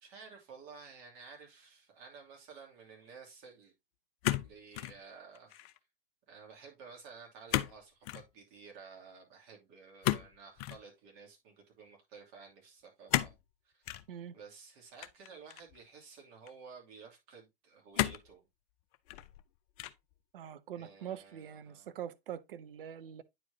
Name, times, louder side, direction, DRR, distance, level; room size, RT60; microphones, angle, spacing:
voice 1, 0.0-3.7 4.4-5.7 6.3-13.4 13.6-13.9 14.3-18.4 20.7-21.9, right 5 dB, 45° right, 2.7 m, -53 dB
sound 1, 4.2-5.0 5.3-5.8 7.5-7.8 8.0-8.3 10.0-10.8 13.1-13.4 13.8-14.1 15.0-15.8 16.5-16.6 17.9-18.3 18.9-19.4 19.8-20.1, left 15 dB, 40° left, 0.6 m, -33 dB
voice 2, 20.3-23.2, right 9 dB, 65° right, 0.7 m, -44 dB
9.2 x 4.8 x 2.7 m
figure-of-eight pair, 95°, 30 cm